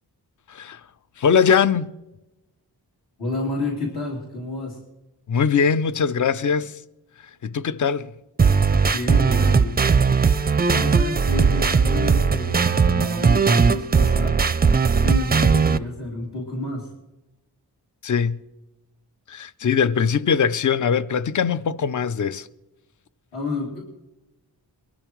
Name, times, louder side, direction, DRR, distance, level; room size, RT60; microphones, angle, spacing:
voice 1, 0.5-0.8 1.2-1.9 5.3-6.7 7.4-8.1 18.0-18.4 19.3-22.5, left 6 dB, 50° left, 0.5 m, -21 dB
voice 2, 3.2-4.8 8.9-9.9 10.5-14.4 15.0-16.9 23.3-23.8, left 2 dB, 70° left, 3.0 m, -30 dB
sound 1, 8.4-15.8, right 5 dB, 25° right, 0.4 m, -18 dB
23.0 x 12.5 x 3.1 m
wide cardioid pair, 115°, 40 cm